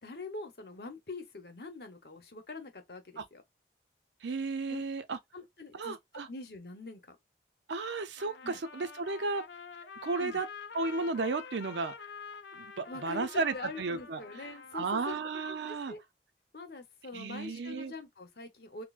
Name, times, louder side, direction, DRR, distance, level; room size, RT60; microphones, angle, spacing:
voice 1, 0.0-3.4 4.7-4.8 5.3-6.0 6.3-7.2 8.4-8.6 10.2-10.4 12.9-13.3 13.5-15.2 15.7-16.0 16.5-18.8, left 3 dB, 60° left, 0.9 m, -44 dB
voice 2, 4.2-5.2 5.7-6.3 7.7-9.4 10.0-10.5 10.7-11.9 12.5-14.5 14.7-15.9 17.1-17.9, right 3 dB, 80° right, 0.6 m, -34 dB
Trumpet, 8.2-15.3, left 6 dB, 80° left, 0.5 m, -48 dB
4.1 x 2.1 x 2.4 m
head